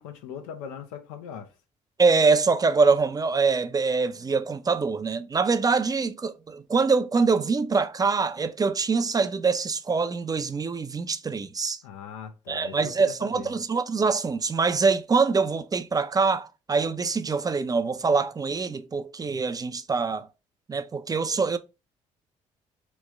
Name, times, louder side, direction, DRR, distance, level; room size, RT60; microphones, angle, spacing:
voice 1, 0.0-1.5 11.8-13.6, left 7 dB, 90° left, 0.5 m, -40 dB
voice 2, 2.0-11.8 12.5-20.3 20.7-21.6, right 4 dB, 25° right, 0.4 m, -24 dB
3.0 x 2.1 x 3.4 m
hypercardioid pair, 55°, 15 cm